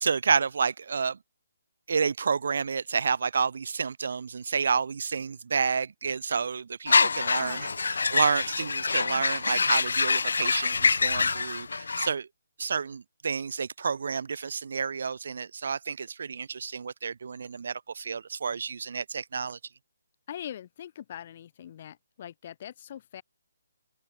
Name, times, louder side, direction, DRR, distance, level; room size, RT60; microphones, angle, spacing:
voice 1, 0.0-1.2 1.9-7.7 8.1-12.3 12.6-19.6, right 5 dB, 45° right, 0.3 m, -30 dB
sound 1, 6.9-12.1, left 4 dB, 65° left, 0.3 m, -25 dB
voice 2, 6.9-7.8 20.3-23.2, left 10 dB, 25° left, 0.8 m, -42 dB
hypercardioid pair, 180°, 0 cm